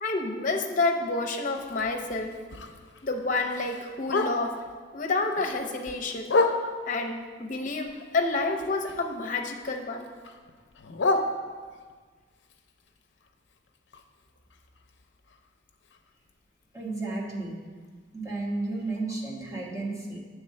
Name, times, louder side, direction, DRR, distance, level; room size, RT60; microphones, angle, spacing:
voice 1, 0.0-2.4 3.0-4.6 4.9-6.4 6.9-10.1, left 3 dB, 45° left, 3 dB, 0.7 m, -29 dB
Bark, 1.5-4.7 5.1-7.0 7.5-9.3 9.6-11.9 12.4-16.3 16.6-16.7 17.0-17.4 17.8-17.9 18.3-18.4 18.9-19.0, left 2 dB, 85° left, 0.6 m, -32 dB
voice 2, 16.7-17.6 18.1-20.2, right 2 dB, 20° right, -3 dB, 1.2 m, -33 dB
8.1 x 3.7 x 6.5 m, 1.5 s
head